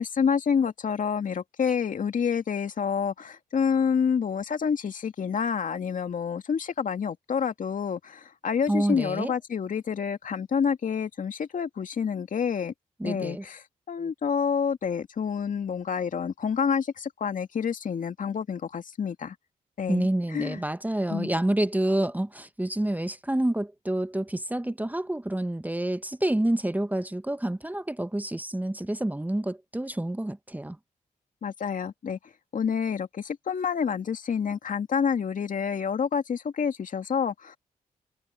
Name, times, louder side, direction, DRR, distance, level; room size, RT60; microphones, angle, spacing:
voice 1, 0.0-12.7 13.0-19.4 19.8-20.6 21.1-21.3 31.4-37.6, left 6 dB, 60° left, 2.3 m, -28 dB
voice 2, 8.7-9.3 13.0-13.4 19.9-30.8, right 1 dB, 10° right, 1.1 m, -28 dB
supercardioid pair, 45°, 15 cm